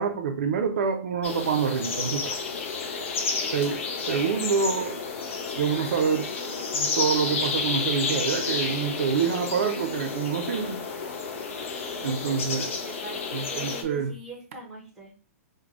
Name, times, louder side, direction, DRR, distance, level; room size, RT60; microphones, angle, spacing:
voice 1, 0.0-2.4 3.5-5.0 5.6-6.3 6.7-10.8 12.0-12.7 13.3-14.1, right 6 dB, 60° right, 0.5 m, -27 dB
sound 1, 1.2-13.8, left 4 dB, 55° left, 0.7 m, -31 dB
voice 2, 3.4-4.1 11.9-15.1, right 2 dB, 5° right, 0.8 m, -43 dB
4.6 x 2.2 x 2.5 m
hypercardioid pair, 175°, 8 cm